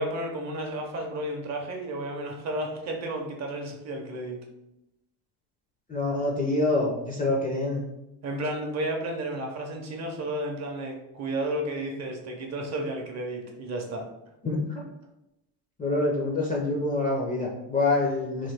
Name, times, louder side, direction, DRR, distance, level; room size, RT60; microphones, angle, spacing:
voice 1, 0.0-4.4 8.2-14.1, right 1 dB, 35° right, 2 dB, 0.6 m, -32 dB
voice 2, 5.9-7.8 14.4-14.8 15.8-18.5, left 2 dB, 20° left, -2 dB, 0.4 m, -26 dB
3.1 x 2.1 x 3.3 m, 0.90 s
supercardioid pair, 105°, 49 cm